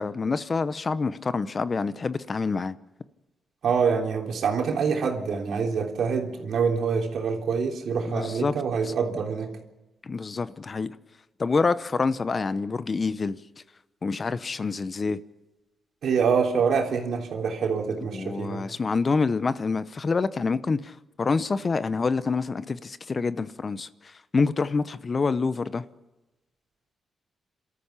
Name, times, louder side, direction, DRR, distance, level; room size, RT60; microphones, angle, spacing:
voice 1, 0.0-2.8 8.1-8.5 8.8-8.9 10.0-10.9 11.4-13.4 14.0-15.2 18.1-25.8, left 4 dB, 40° left, 0.8 m, -27 dB
voice 2, 3.6-9.5 16.0-18.6, right 6 dB, 75° right, 3.4 m, -25 dB
27.0 x 13.5 x 8.4 m
cardioid pair, 90°, 0 cm